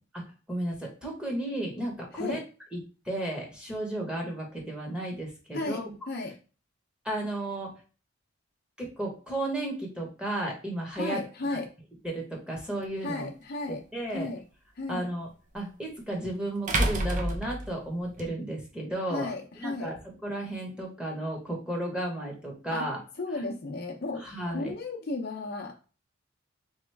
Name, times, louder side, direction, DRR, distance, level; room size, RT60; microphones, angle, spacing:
voice 1, 0.5-2.4 2.7-2.8 3.0-5.9 7.0-7.7 8.8-11.2 11.5-11.6 12.0-13.3 13.7-14.3 14.9-15.3 15.5-19.9 20.2-23.0 24.2-24.7, right 1 dB, 5° right, -1 dB, 1.1 m, -33 dB
voice 2, 5.5-6.3 11.0-11.7 13.0-13.8 14.1-14.4 14.8-15.1 19.1-19.9 22.7-22.9 23.2-24.2 24.5-25.8, left 2 dB, 55° left, 2 dB, 0.6 m, -34 dB
sound 1, 12.8-12.9 15.5-15.6 16.7-18.3, right 1 dB, 40° right, 0.6 m, -28 dB
3.6 x 3.1 x 3.4 m, 0.35 s
head